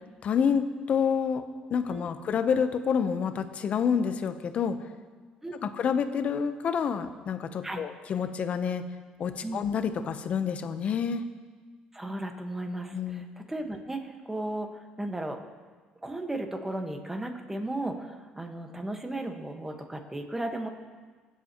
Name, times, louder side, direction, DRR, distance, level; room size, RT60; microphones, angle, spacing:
voice 1, 0.2-1.4 1.7-4.8 5.6-8.8 9.2-11.2 12.9-13.3, left 7 dB, 50° left, 9 dB, 0.9 m, -28 dB
voice 2, 11.9-15.4 16.0-20.7, right 1 dB, 10° right, 4 dB, 1.4 m, -35 dB
25.0 x 8.3 x 3.0 m, 1.5 s
cardioid pair, 95°, 3 cm